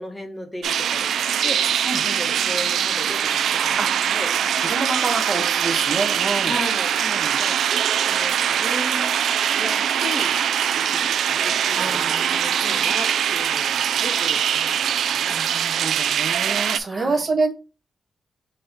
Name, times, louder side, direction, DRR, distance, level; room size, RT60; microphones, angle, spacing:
voice 1, 0.0-1.8 2.0-3.8 4.1-4.3 6.4-6.9 7.2-7.6 8.0-9.2 9.5-10.4 10.7-15.4 16.9-17.2, left 1 dB, 10° left, 5 dB, 0.8 m, -35 dB
sound 1, 0.6-16.8, right 9 dB, 90° right, 0.3 m, -22 dB
voice 2, 3.8-6.6 7.0-7.4 11.4-13.2 15.3-17.5, right 3 dB, 30° right, 5 dB, 0.7 m, -28 dB
5.3 x 2.7 x 3.4 m, 0.31 s
wide cardioid pair, 165°, 0 cm